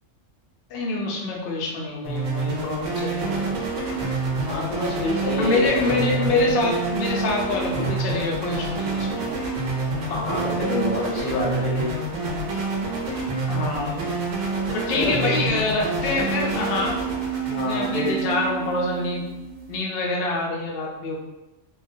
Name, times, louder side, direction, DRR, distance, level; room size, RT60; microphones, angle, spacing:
voice 1, 0.7-3.5 5.4-9.3 13.5-14.0 14.7-17.0 17.5-19.2 19.7-21.2, left 2 dB, 65° left, -2 dB, 0.6 m, -26 dB
sound 1, 2.0-19.8, right 3 dB, 80° right, 0.9 m, -27 dB
sound 2, 3.3-4.4 5.4-6.8 7.6-8.6 8.8-8.9 10.1-11.1, equal, 10° right, 0.7 m, -38 dB
voice 2, 4.4-5.7 10.1-11.9 14.9-15.4 17.4-18.2, left 2 dB, 90° left, -3 dB, 1.0 m, -27 dB
2.2 x 2.1 x 2.5 m, 1.0 s
omnidirectional pair, 1.3 m